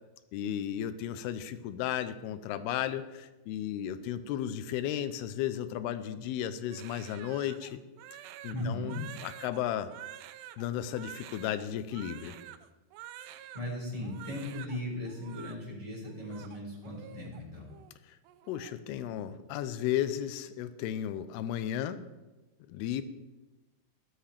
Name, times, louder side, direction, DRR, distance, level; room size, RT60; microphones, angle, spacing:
voice 1, 0.3-7.8 8.4-9.9 10.6-12.4 18.5-22.0 22.7-23.0, left 11 dB, 80° left, 12 dB, 2.6 m, -34 dB
Crying sobbing, 6.7-13.7 14.0-14.8 15.0-15.6 16.0-17.4 17.7-17.9 18.2-18.7, right 12 dB, 80° right, 2.7 m, -48 dB
voice 2, 8.5-9.0 13.2-17.7, left 1 dB, 10° left, -4 dB, 3.8 m, -38 dB
16.0 x 13.0 x 3.4 m, 1.1 s
omnidirectional pair, 4.8 m